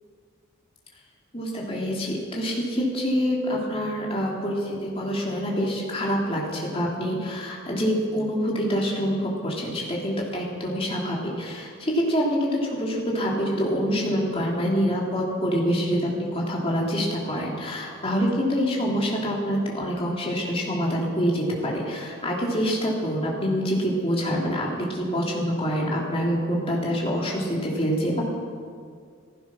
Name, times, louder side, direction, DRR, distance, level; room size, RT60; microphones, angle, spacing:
voice 1, 1.3-28.2, equal, 25° left, -3 dB, 3.1 m, -26 dB
15.0 x 15.0 x 6.2 m, 2.1 s
head